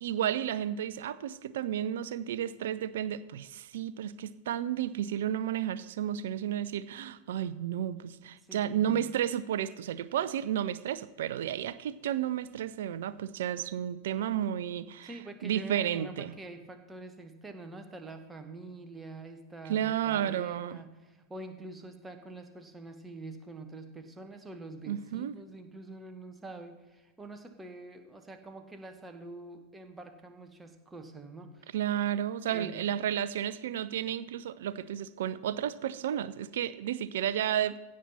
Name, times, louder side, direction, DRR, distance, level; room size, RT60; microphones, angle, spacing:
voice 1, 0.0-15.1 15.4-16.3 19.7-20.8 24.8-25.3 31.7-37.8, right 10 dB, 60° right, 16 dB, 0.6 m, -32 dB
voice 2, 8.4-9.1 15.0-31.8 32.5-32.8, right 2 dB, 10° right, 6 dB, 1.4 m, -46 dB
16.0 x 7.4 x 4.2 m, 1.2 s
figure-of-eight pair, 90°, 0 cm